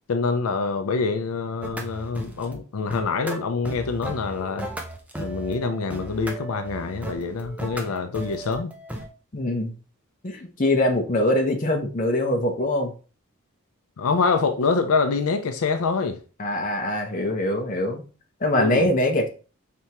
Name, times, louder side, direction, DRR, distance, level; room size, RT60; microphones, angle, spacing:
voice 1, 0.1-4.7 5.2-8.7 14.0-16.2 18.6-18.9, left 4 dB, 80° left, 0.5 m, -25 dB
sound 1, 1.6-2.6 2.9-9.1, right 2 dB, 5° right, 0.5 m, -36 dB
voice 2, 9.3-9.7 10.2-12.9 16.4-18.0 18.4-19.3, left 1 dB, 35° left, 0.7 m, -23 dB
4.4 x 3.4 x 2.8 m
head